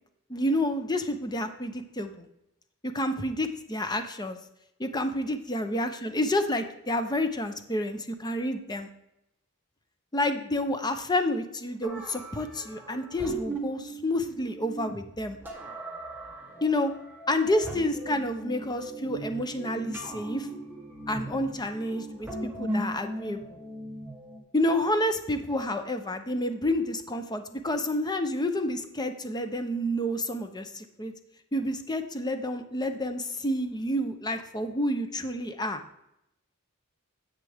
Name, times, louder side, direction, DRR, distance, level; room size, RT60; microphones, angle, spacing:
voice 1, 0.3-2.3 2.9-4.4 4.8-8.9 10.1-15.4 16.6-16.9 17.3-20.5 21.1-23.6 24.5-31.1 31.5-35.8, left 1 dB, 20° left, 8 dB, 0.7 m, -29 dB
sound 1, 11.8-24.4, right 1 dB, 10° right, 1.4 m, -38 dB
10.0 x 7.4 x 3.5 m, 0.82 s
head